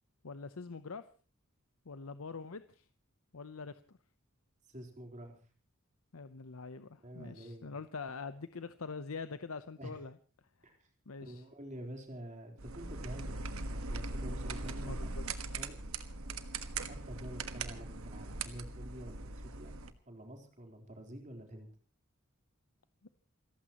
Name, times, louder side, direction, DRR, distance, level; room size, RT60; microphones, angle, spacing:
voice 1, 0.2-1.0 1.9-2.8 3.3-4.0 6.1-10.2 11.1-11.4 14.9-15.2, left 4 dB, 75° left, 12 dB, 0.8 m, -44 dB
voice 2, 4.7-5.3 7.0-7.7 9.8-9.9 10.6-10.9 11.2-15.0 15.6-15.9 16.8-19.8 20.1-21.7, right 1 dB, 35° right, 3 dB, 3.9 m, -48 dB
sound 1, 12.6-19.9, right 3 dB, 75° right, 1.5 m, -40 dB
29.0 x 15.0 x 3.0 m, 0.38 s
head